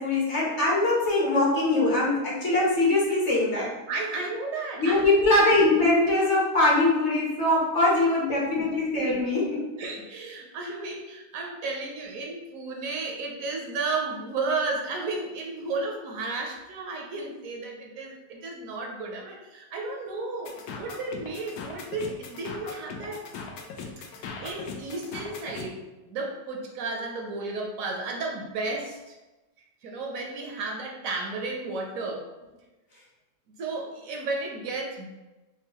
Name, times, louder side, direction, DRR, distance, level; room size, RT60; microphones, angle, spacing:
voice 1, 0.0-3.7 4.8-9.6, left 2 dB, 55° left, -4 dB, 1.1 m, -22 dB
voice 2, 3.9-5.5 9.8-23.3 24.0-24.1 24.4-29.2 29.8-32.3 33.5-35.1, right 3 dB, 70° right, 1 dB, 0.9 m, -33 dB
sound 1, 20.5-25.7, left 5 dB, 75° left, 1.0 m, -39 dB
4.5 x 2.2 x 2.9 m, 1.1 s
omnidirectional pair, 1.6 m